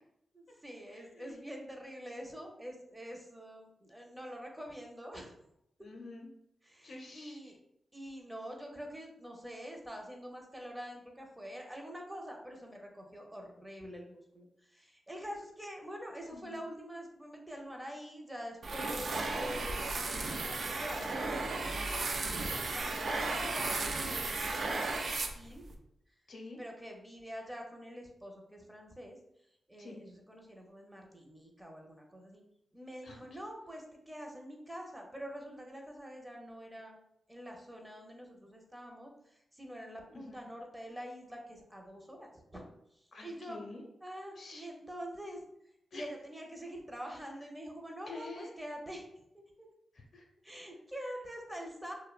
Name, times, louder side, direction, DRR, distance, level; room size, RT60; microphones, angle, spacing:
voice 1, 0.3-5.3 6.6-7.6 7.9-25.6 26.6-29.2 29.7-32.4 32.7-37.0 37.3-42.6 43.2-43.6 44.0-45.4 45.9-49.1 49.3-49.7 50.4-51.9, equal, 15° right, 1 dB, 0.5 m, -46 dB
voice 2, 0.9-1.5 5.8-6.3 6.8-7.4 16.3-16.6 26.3-26.6 29.8-30.0 33.0-33.4 40.1-40.3 43.1-43.9 44.4-44.7 45.9-46.1 48.1-48.5 49.9-50.3, left 3 dB, 65° left, 0 dB, 0.5 m, -48 dB
sound 1, 18.6-25.8, right 3 dB, 65° right, 0.3 m, -35 dB
2.6 x 2.1 x 2.3 m, 0.78 s
cardioid pair, 60°, 0 cm